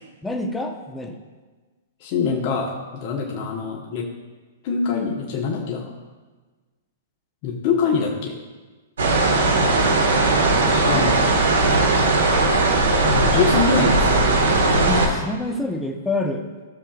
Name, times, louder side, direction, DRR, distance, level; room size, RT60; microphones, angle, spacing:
voice 1, 0.2-1.2 10.8-11.2 14.7-16.5, left 2 dB, 5° left, 2 dB, 1.0 m, -28 dB
voice 2, 2.0-4.1 4.6-5.9 7.4-8.4 10.7-11.2 13.0-14.9, left 5 dB, 45° left, -2 dB, 1.4 m, -24 dB
sound 1, 9.0-15.1, right 2 dB, 70° right, 1.7 m, -18 dB
15.0 x 7.1 x 2.5 m, 1.3 s
figure-of-eight pair, 105°, 0 cm